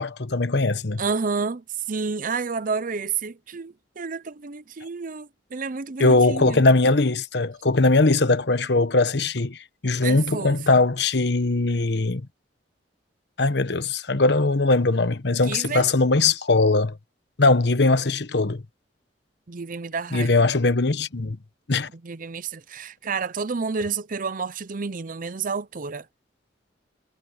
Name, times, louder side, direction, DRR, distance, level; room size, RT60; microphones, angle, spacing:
voice 1, 0.0-1.0 6.0-12.3 13.4-17.0 17.4-18.6 20.1-21.4 21.7-21.9, left 3 dB, 65° left, 1.2 m, -20 dB
voice 2, 1.0-6.6 10.0-10.8 15.4-15.9 19.5-20.3 22.0-26.1, right 5 dB, 50° right, 0.7 m, -30 dB
head